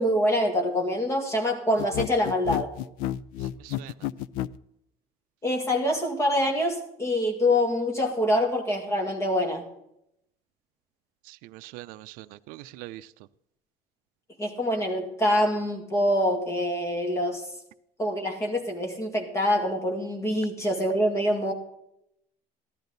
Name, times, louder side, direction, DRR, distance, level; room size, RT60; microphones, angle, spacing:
voice 1, 0.0-2.7 5.4-9.6 14.4-17.5 18.0-21.5, left 1 dB, 20° left, 2.2 m, -25 dB
sound 1, 1.8-4.6, left 13 dB, 75° left, 0.4 m, -31 dB
voice 2, 3.6-3.9 11.3-13.1, right 17 dB, 75° right, 0.5 m, -43 dB
14.5 x 12.0 x 4.0 m
cardioid pair, 175°, 15 cm